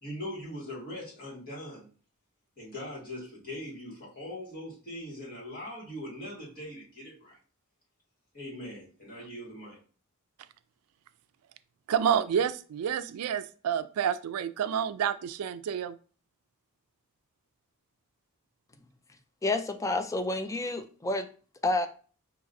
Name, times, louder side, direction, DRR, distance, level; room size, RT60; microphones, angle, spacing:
voice 1, 0.0-1.9 2.6-7.4 8.3-9.8, left 1 dB, 45° left, 1.9 m, -41 dB
voice 2, 11.9-15.9, right 8 dB, 85° right, 0.3 m, -29 dB
voice 3, 19.4-21.3 21.6-21.9, left 2 dB, 15° left, 0.3 m, -29 dB
5.1 x 2.8 x 2.6 m
head